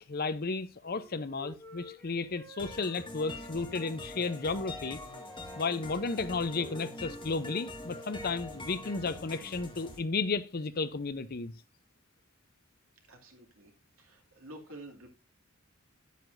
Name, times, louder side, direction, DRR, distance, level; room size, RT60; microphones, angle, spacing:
voice 1, 0.0-5.0 5.5-11.5, left 4 dB, 45° left, 0.6 m, -33 dB
Wind instrument woodwind instrument, 0.8-3.8 4.1-7.4, left 1 dB, 10° left, 2.9 m, -53 dB
sound 1, 2.6-10.0, left 1 dB, 25° left, 1.5 m, -44 dB
voice 2, 13.1-13.7 14.0-15.1, right 1 dB, 75° right, 2.4 m, -49 dB
9.6 x 9.3 x 2.6 m
head